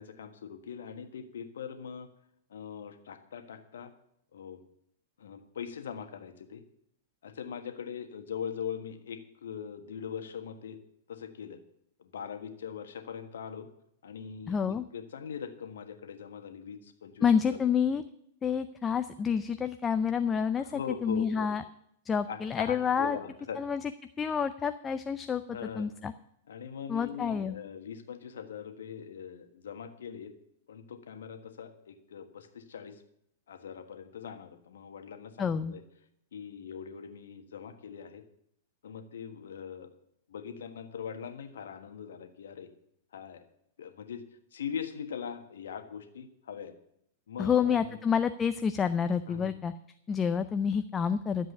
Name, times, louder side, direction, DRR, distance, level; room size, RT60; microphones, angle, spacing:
voice 1, 0.0-2.1 2.5-3.9 4.3-4.6 5.2-6.6 7.2-10.8 11.1-11.6 12.0-13.7 14.0-14.6 14.9-17.6 20.6-21.5 22.3-23.6 25.5-25.9 26.5-30.3 30.7-33.0 33.5-35.8 36.3-38.2 38.8-39.9 40.3-42.7 43.1-43.4 43.8-44.2 44.5-46.7 47.3-48.0 49.3-49.5, left 7 dB, 65° left, 7 dB, 1.4 m, -41 dB
voice 2, 14.5-14.8 17.2-18.0 18.4-21.6 22.1-23.2 23.6-23.8 24.2-26.1 26.9-27.6 35.4-35.7 47.4-49.7 50.1-51.5, left 7 dB, 20° left, 10 dB, 0.5 m, -28 dB
12.5 x 7.6 x 6.7 m, 0.74 s
figure-of-eight pair, 100°, 0 cm